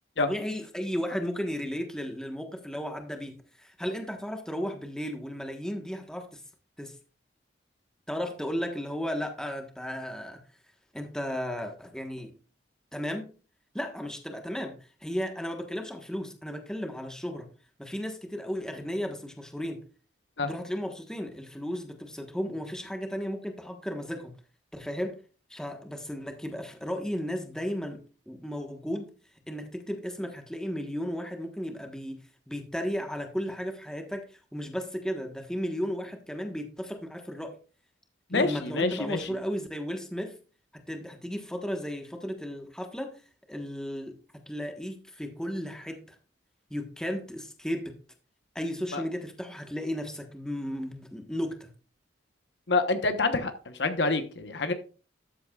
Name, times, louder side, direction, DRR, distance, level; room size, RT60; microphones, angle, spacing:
voice 1, 0.2-6.4 6.8-6.9 8.1-10.4 10.9-12.3 12.9-13.3 13.7-17.5 17.8-19.8 20.4-24.3 24.7-25.2 25.5-29.1 29.5-37.6 38.3-40.4 40.7-43.2 43.5-44.1 44.5-46.1 46.7-48.0 48.5-51.7, equal, 5° left, 1.3 m, -34 dB
voice 2, 38.3-39.3 48.9-49.0 52.7-54.7, left 3 dB, 65° left, 1.1 m, -27 dB
13.0 x 8.2 x 2.4 m
head